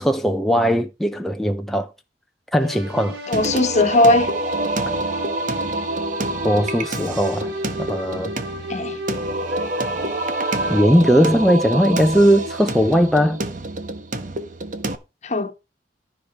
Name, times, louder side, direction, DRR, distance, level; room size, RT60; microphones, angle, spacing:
voice 1, 0.0-1.9 2.5-3.2 6.4-7.5 7.8-8.3 10.7-13.4, equal, ahead, 0.8 m, -18 dB
sound 1, 2.6-10.8, right 1 dB, 70° right, 3.3 m, -34 dB
voice 2, 3.3-4.3 8.7-9.0 15.2-15.5, left 2 dB, 40° left, 1.4 m, -18 dB
Singing, 3.3-15.0, right 2 dB, 45° right, 1.4 m, -27 dB
13.5 x 5.0 x 5.9 m
head